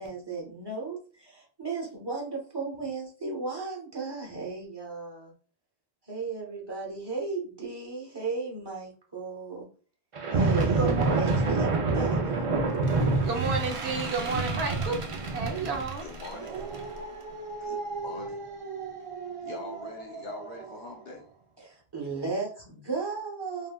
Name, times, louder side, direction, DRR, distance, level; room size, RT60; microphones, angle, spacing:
voice 1, 0.0-5.3 6.1-9.7 10.3-12.5 21.6-23.7, right 4 dB, 25° right, -2 dB, 0.8 m, -35 dB
Halloween Werewolf Intro, 10.2-20.7, right 3 dB, 55° right, 0.3 m, -29 dB
voice 2, 10.8-11.2 13.2-15.0 15.3-16.0, right 4 dB, 85° right, 3 dB, 0.9 m, -31 dB
voice 3, 16.0-16.7 17.6-18.4 19.4-21.3, left 4 dB, 55° left, 0 dB, 0.6 m, -43 dB
3.4 x 2.1 x 2.2 m, 0.39 s
omnidirectional pair, 1.0 m